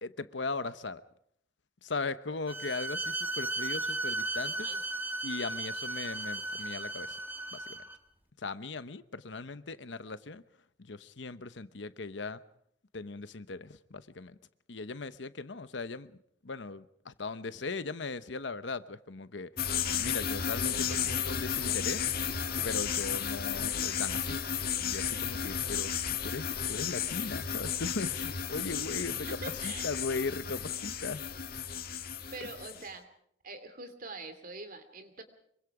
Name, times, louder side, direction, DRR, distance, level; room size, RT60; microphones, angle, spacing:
voice 1, 0.0-1.0 1.8-4.7 5.2-7.1 7.5-7.8 8.4-10.4 10.8-12.4 12.9-14.4 14.7-16.1 16.4-19.5 20.0-22.1 22.6-24.4 24.8-25.9 26.2-29.3 29.6-31.2, left 3 dB, 70° left, 13 dB, 1.0 m, -38 dB
Bowed string instrument, 2.5-8.0, right 2 dB, 10° right, 1.6 m, -35 dB
voice 2, 4.4-4.8 20.9-21.3 29.0-29.2 29.4-29.9 32.3-33.1 33.4-35.2, right 3 dB, 50° right, 9 dB, 2.8 m, -44 dB
sound 1, 19.6-32.9, left 8 dB, 55° left, 1.8 m, -33 dB
25.5 x 23.5 x 4.9 m, 0.70 s
head